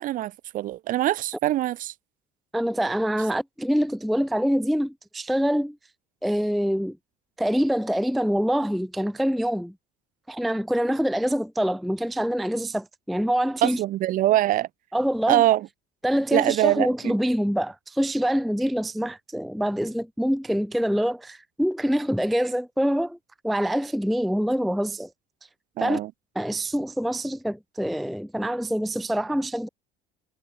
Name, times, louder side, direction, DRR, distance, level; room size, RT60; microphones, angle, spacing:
voice 1, 0.0-1.9 13.6-14.7 15.3-15.7 16.3-17.1 25.8-26.1, right 14 dB, 50° right, 0.9 m, -23 dB
voice 2, 2.5-5.8 6.2-7.0 7.4-9.7 10.3-13.8 14.9-15.4 16.0-23.2 23.4-25.1 25.8-26.0 26.4-29.7, equal, ahead, 0.3 m, -25 dB
cardioid pair, 145°, 18 cm